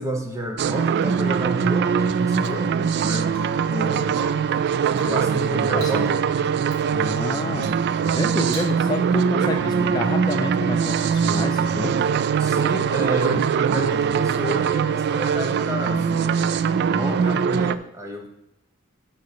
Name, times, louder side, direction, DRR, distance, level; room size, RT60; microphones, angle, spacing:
voice 1, 0.0-3.3 3.7-4.2 5.0-6.2 12.4-16.5 16.8-18.3, right 1 dB, 15° right, 3 dB, 1.1 m, -30 dB
sound 1, 0.6-17.8, right 6 dB, 50° right, 0.3 m, -22 dB
Rain / Water tap faucet / Drip, 2.4-2.8 3.3-3.8 4.1-4.5 4.9-5.4 5.7-6.1 6.6-6.8 7.6-7.9 8.1-8.2 8.5-9.0 9.4-9.8 10.4-10.7 13.2-13.6 15.5-15.6, right 3 dB, 85° right, 3.1 m, -39 dB
voice 2, 5.7-6.1 6.9-12.1, left 2 dB, 20° left, 3 dB, 0.4 m, -29 dB
7.6 x 4.3 x 6.8 m, 0.84 s
head